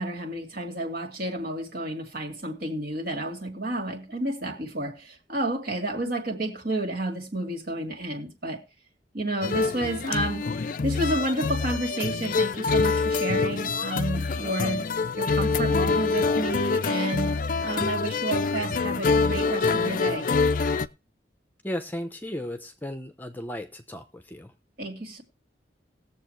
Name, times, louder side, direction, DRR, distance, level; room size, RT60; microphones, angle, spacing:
voice 1, 0.0-8.6 9.1-10.5 10.8-14.9 15.2-20.3 24.8-25.2, right 1 dB, 55° right, 2.4 m, -31 dB
sound 1, 9.4-20.9, left 4 dB, 50° left, 0.5 m, -25 dB
voice 2, 21.6-24.5, left 1 dB, 10° left, 0.8 m, -35 dB
19.0 x 7.2 x 3.2 m
head